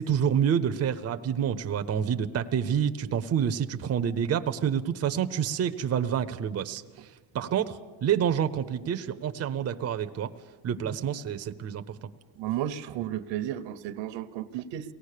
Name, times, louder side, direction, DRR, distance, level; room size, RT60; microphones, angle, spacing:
voice 1, 0.0-10.3 10.6-12.1, right 8 dB, 35° right, 9 dB, 0.7 m, -28 dB
voice 2, 12.4-14.9, right 11 dB, 75° right, 12 dB, 1.0 m, -33 dB
23.0 x 18.0 x 6.7 m, 1.4 s
cardioid pair, 145°, 44 cm